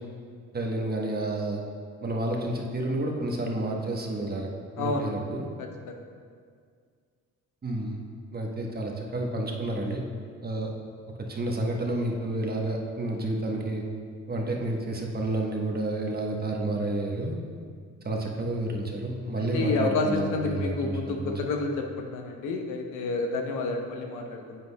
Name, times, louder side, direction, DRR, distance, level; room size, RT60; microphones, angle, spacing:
voice 1, 0.5-1.6 2.0-4.5 4.8-5.4 7.6-8.0 8.3-10.0 10.4-10.7 11.3-13.8 14.3-17.4 18.0-21.4, right 2 dB, 30° right, 0 dB, 1.1 m, -30 dB
voice 2, 4.8-5.1 5.6-5.9 19.4-24.6, left 3 dB, 90° left, 3 dB, 0.9 m, -30 dB
9.7 x 7.8 x 2.3 m, 2.1 s
cardioid pair, 90°, 30 cm